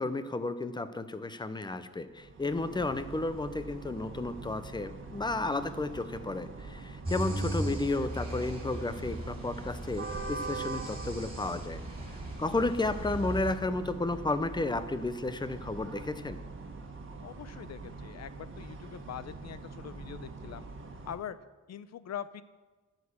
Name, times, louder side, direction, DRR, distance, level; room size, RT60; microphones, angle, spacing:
voice 1, 0.0-11.8 12.4-16.4, left 2 dB, 15° left, 12 dB, 0.6 m, -32 dB
sound 1, 2.0-21.2, right 3 dB, 40° right, 1.6 m, -43 dB
sound 2, 7.0-13.5, right 1 dB, 20° right, 2.9 m, -38 dB
voice 2, 17.2-20.7 21.1-21.4 21.7-22.4, left 9 dB, 55° left, 15 dB, 0.6 m, -43 dB
13.5 x 6.6 x 7.0 m, 1.2 s
wide cardioid pair, 145°, 32 cm